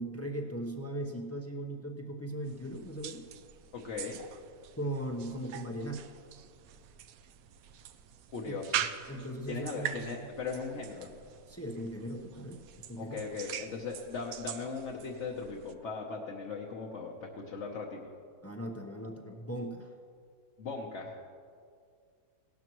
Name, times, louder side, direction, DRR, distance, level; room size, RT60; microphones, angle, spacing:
voice 1, 0.0-3.2 4.8-6.1 8.4-8.6 9.1-10.2 11.5-12.6 12.9-13.2 18.4-19.9, right 1 dB, 15° left, 2 dB, 0.6 m, -38 dB
sound 1, 2.4-15.7, right 10 dB, 75° right, 1.0 m, -43 dB
voice 2, 3.7-4.2 8.3-8.8 9.5-11.1 13.0-18.1 20.6-21.2, left 4 dB, 55° left, -1 dB, 1.2 m, -38 dB
17.5 x 12.5 x 3.1 m, 2.2 s
omnidirectional pair, 1.6 m